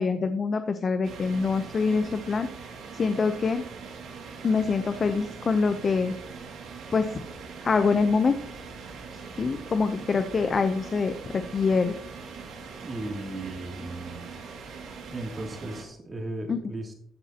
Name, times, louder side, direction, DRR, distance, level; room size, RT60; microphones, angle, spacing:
voice 1, 0.0-2.5 3.0-3.6 4.4-6.1 6.9-7.1 7.6-8.4 9.4-11.9 16.5-16.6, left 4 dB, 40° left, 9 dB, 0.8 m, -25 dB
sound 1, 1.0-15.8, right 5 dB, 75° right, 2.5 m, -42 dB
voice 2, 12.8-14.3 15.1-16.9, right 2 dB, 30° right, 2 dB, 2.8 m, -36 dB
14.5 x 8.0 x 3.0 m, 0.62 s
cardioid pair, 90°, 0 cm